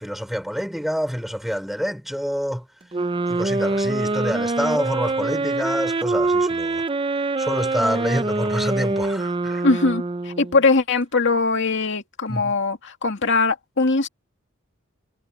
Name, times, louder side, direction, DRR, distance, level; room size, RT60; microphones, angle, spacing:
voice 1, 0.0-2.6 3.3-6.8 7.4-9.6 12.3-12.5, equal, ahead, 3.8 m, -27 dB
sound 1, 2.9-10.6, right 2 dB, 25° right, 0.6 m, -24 dB
voice 2, 9.6-14.1, left 3 dB, 60° left, 2.3 m, -21 dB
head